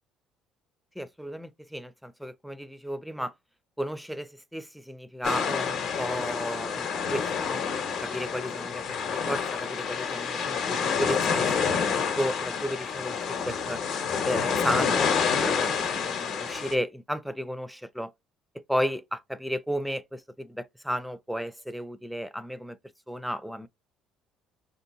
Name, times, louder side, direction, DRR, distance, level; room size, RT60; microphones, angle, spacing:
voice 1, 1.0-3.3 3.8-7.6 8.0-13.8 14.2-18.1 18.7-22.8 23.1-23.7, equal, ahead, 0.4 m, -33 dB
sound 1, 5.2-16.8, left 6 dB, 60° left, 0.8 m, -28 dB
3.4 x 2.8 x 2.6 m
cardioid pair, 100°, 0 cm